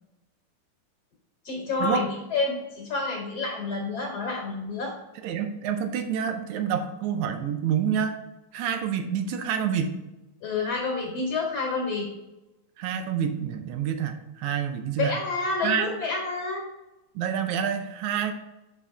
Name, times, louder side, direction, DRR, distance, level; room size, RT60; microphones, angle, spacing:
voice 1, 1.4-4.9 10.4-12.1 15.0-16.6, left 3 dB, 55° left, -2 dB, 2.5 m, -29 dB
voice 2, 5.2-8.1 8.5-9.9 12.8-15.2 15.6-15.9 17.2-18.3, right 8 dB, 75° right, 7 dB, 1.9 m, -27 dB
7.3 x 5.7 x 3.3 m, 0.97 s
omnidirectional pair, 3.7 m